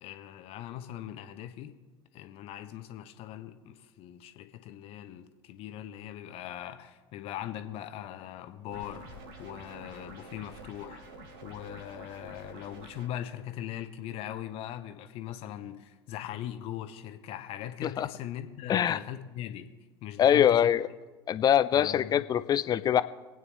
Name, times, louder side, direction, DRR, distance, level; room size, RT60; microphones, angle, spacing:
voice 1, 0.0-1.7 2.1-9.1 9.4-11.0 11.4-19.7 20.0-20.7 21.7-22.2, left 11 dB, 45° left, 9 dB, 1.0 m, -40 dB
sound 1, 8.7-13.1, right 2 dB, 60° right, 1.7 m, -48 dB
voice 2, 20.2-20.9 21.3-23.0, left 10 dB, 30° left, 15 dB, 0.5 m, -23 dB
25.5 x 9.1 x 3.2 m, 1.3 s
figure-of-eight pair, 70°, 14 cm